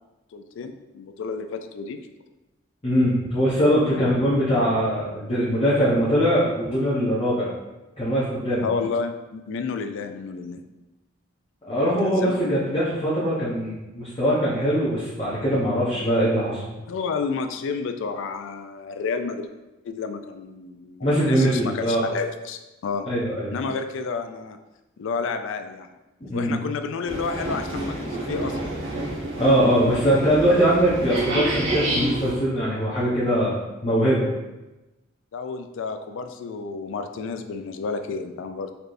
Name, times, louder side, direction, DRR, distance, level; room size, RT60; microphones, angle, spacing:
voice 1, 0.3-2.0 8.6-10.6 12.0-12.5 16.9-19.5 19.8-23.1 23.5-24.6 25.0-25.9 26.3-28.6 35.3-38.7, left 5 dB, 65° left, 7 dB, 0.3 m, -30 dB
voice 2, 2.8-7.5 8.0-8.6 11.6-16.6 21.0-22.0 23.1-23.5 26.2-26.5 29.1-33.5 33.8-34.3, equal, 30° left, -9 dB, 0.8 m, -22 dB
sound 1, 27.1-32.3, right 2 dB, 65° right, 1.1 m, -28 dB
4.2 x 3.3 x 2.5 m, 1.0 s
head